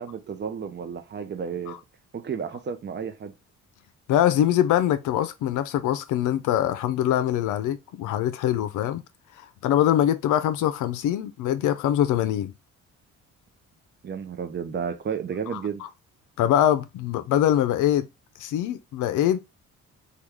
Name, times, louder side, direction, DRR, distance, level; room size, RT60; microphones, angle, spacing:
voice 1, 0.0-1.8 2.1-3.3 14.0-15.8, right 7 dB, 35° right, 0.6 m, -32 dB
voice 2, 4.1-9.0 9.4-12.5 15.5-15.6 16.4-18.1 18.4-19.6, left 11 dB, 80° left, 0.5 m, -23 dB
3.1 x 2.3 x 3.5 m
cardioid pair, 90°, 30 cm